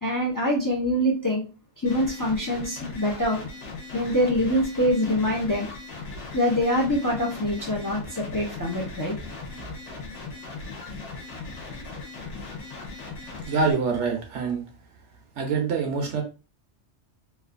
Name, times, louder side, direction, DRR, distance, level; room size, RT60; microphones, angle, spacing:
voice 1, 0.0-1.4 1.8-3.4 3.9-5.7 6.3-9.1, equal, 25° left, -2 dB, 0.5 m, -24 dB
sound 1, 1.9-13.7, left 3 dB, 85° left, 1.3 m, -38 dB
voice 2, 13.5-14.6 15.4-16.2, right 4 dB, 75° right, 2 dB, 1.1 m, -25 dB
3.1 x 2.4 x 2.5 m, 0.33 s
omnidirectional pair, 1.2 m